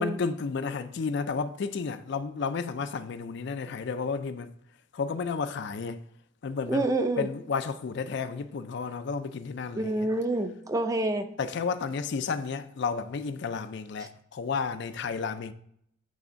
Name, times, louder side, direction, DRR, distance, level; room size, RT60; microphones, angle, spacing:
voice 1, 0.0-4.5 4.9-6.0 6.4-6.9 7.2-10.1 11.4-15.5, left 5 dB, 55° left, 0.4 m, -32 dB
voice 2, 6.7-7.3 9.8-11.3 14.0-14.1, right 2 dB, 15° right, 0.5 m, -28 dB
8.4 x 3.5 x 5.1 m
head